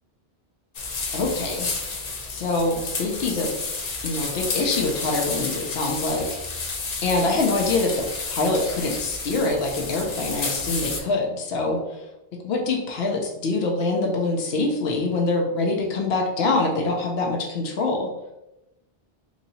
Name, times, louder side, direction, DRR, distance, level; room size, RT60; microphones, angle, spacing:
sound 1, 0.7-11.0, left 4 dB, 50° left, 0.6 m, -31 dB
voice 1, 1.1-1.7 2.3-3.5 4.0-6.3 7.0-8.0 8.3-12.0 12.4-18.1, left 3 dB, 80° left, 0 dB, 0.9 m, -24 dB
3.0 x 2.7 x 3.9 m, 0.93 s
omnidirectional pair, 1.0 m